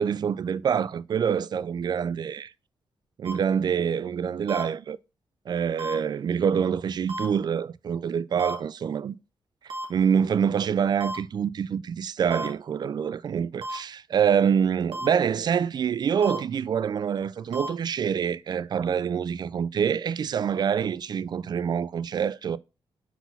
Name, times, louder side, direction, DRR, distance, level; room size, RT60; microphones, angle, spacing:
voice 1, 0.0-2.5 3.2-5.0 5.5-9.2 9.6-22.6, right 7 dB, 50° right, 0.3 m, -26 dB
sound 1, 3.2-3.3 4.5-4.6 5.8-5.9 7.1-7.2 8.4-8.5 9.7-9.8 11.0-11.2 12.3-12.5 13.6-13.8 14.9-15.1 16.2-16.4 17.5-17.7, right 1 dB, 85° right, 1.5 m, -33 dB
4.2 x 4.0 x 5.6 m
cardioid pair, 75°, 9 cm